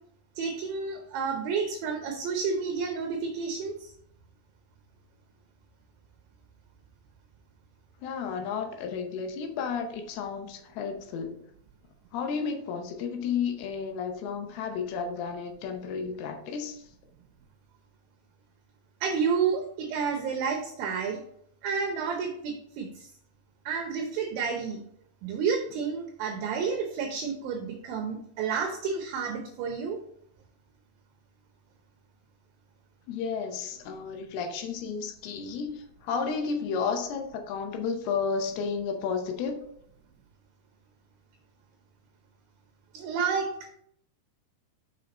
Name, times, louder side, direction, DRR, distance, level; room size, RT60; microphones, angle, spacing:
voice 1, 0.4-3.9 19.0-21.2 21.6-23.1 23.7-24.8 25.2-30.0 42.9-43.5, right 6 dB, 75° right, 3 dB, 2.3 m, -30 dB
voice 2, 8.0-11.4 12.1-16.9 33.1-39.6, left 5 dB, 75° left, 5 dB, 2.7 m, -32 dB
6.4 x 5.5 x 4.3 m, 0.69 s
omnidirectional pair, 4.7 m